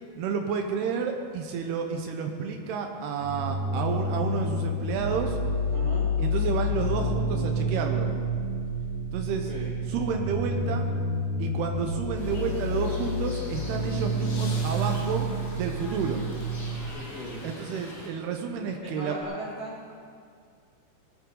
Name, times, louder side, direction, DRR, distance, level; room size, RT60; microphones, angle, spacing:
voice 1, 0.2-5.4 6.2-8.1 9.1-9.5 9.9-10.8 11.4-15.3 15.6-16.3 17.4-19.1, right 6 dB, 85° right, 3 dB, 2.3 m, -30 dB
sound 1, 3.2-16.9, equal, 55° right, 2.8 m, -29 dB
voice 2, 5.7-6.1 9.4-9.7 16.9-17.4 18.8-19.9, equal, 60° left, -7 dB, 0.9 m, -38 dB
sound 2, 12.1-18.1, left 1 dB, 30° left, 1.6 m, -44 dB
sound 3, 14.1-18.0 19.2-19.3, left 3 dB, 80° left, 4.9 m, -47 dB
19.0 x 14.0 x 3.8 m, 2.2 s
omnidirectional pair, 5.8 m